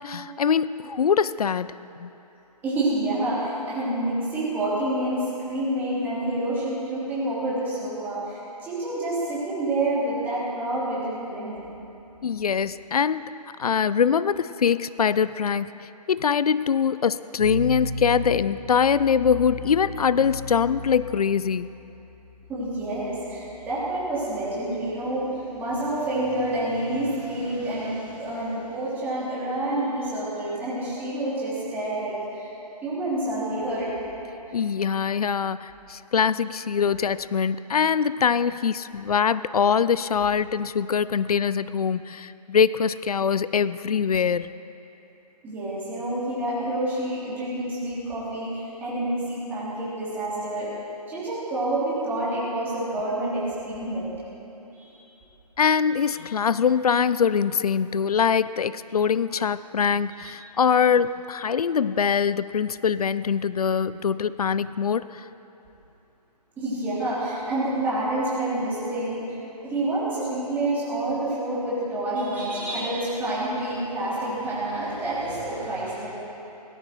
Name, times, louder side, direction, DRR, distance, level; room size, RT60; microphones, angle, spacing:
voice 1, 0.0-2.1 12.2-13.3 13.6-15.7 16.1-21.7 34.5-44.5 55.6-65.3, left 7 dB, 65° left, 16 dB, 0.4 m, -23 dB
voice 2, 2.6-11.7 22.5-32.5 32.8-33.9 34.5-34.6 45.4-50.7 51.1-54.1 54.7-54.9 60.2-60.3 66.6-69.3 69.6-76.1, right 1 dB, 10° right, -10 dB, 3.2 m, -28 dB
sound 1, 17.4-28.6, left 1 dB, 35° left, 3.1 m, -38 dB
17.0 x 13.5 x 4.6 m, 3.0 s
figure-of-eight pair, 155°, 21 cm